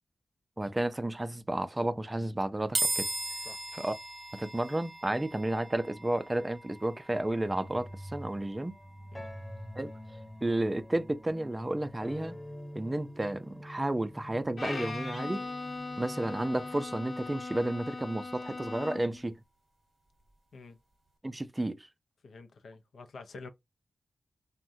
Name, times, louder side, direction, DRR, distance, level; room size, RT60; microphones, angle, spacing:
voice 1, 0.6-3.1 3.7-4.0 4.3-8.7 9.8-9.9 10.4-12.4 12.7-15.5 16.0-19.4 21.2-21.9, right 1 dB, 20° right, 0.4 m, -32 dB
sound 1, 2.8-16.1, right 2 dB, 45° right, 0.9 m, -41 dB
sound 2, 7.4-16.9, equal, 5° left, 0.8 m, -46 dB
Bowed string instrument, 14.6-19.2, left 3 dB, 55° left, 0.9 m, -39 dB
voice 2, 22.2-23.5, left 3 dB, 80° left, 0.5 m, -48 dB
3.5 x 2.1 x 2.5 m
cardioid pair, 55°, 0 cm